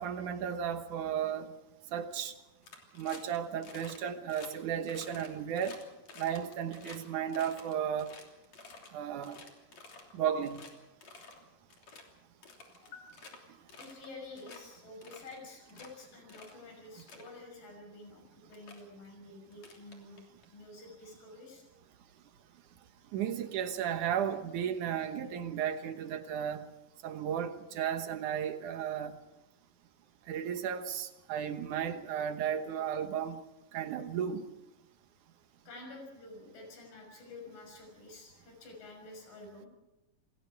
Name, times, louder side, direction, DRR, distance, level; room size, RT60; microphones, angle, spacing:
voice 1, 0.0-1.5 1.9-2.3 3.0-5.8 6.2-8.1 8.9-9.4 10.1-10.6 23.1-26.7 27.0-29.2 30.3-33.4 33.7-34.4, right 8 dB, 70° right, 2.7 m, -34 dB
sound 1, 2.6-3.4 3.6-4.0 4.3-4.5 4.9-7.0 7.3-8.9 9.2-10.1 10.4-10.7 11.0-11.4 11.7-12.0 12.4-13.4 13.7-14.1 14.4-14.6 15.0-15.9 16.3-16.6 16.9-17.3 18.1-18.2 18.5-18.8 19.5-20.4, left 4 dB, 55° left, 4.3 m, -51 dB
voice 2, 12.8-13.3 13.8-20.2 20.5-21.6 35.7-39.7, left 2 dB, 90° left, 7.6 m, -49 dB
28.0 x 21.0 x 4.8 m
omnidirectional pair, 3.8 m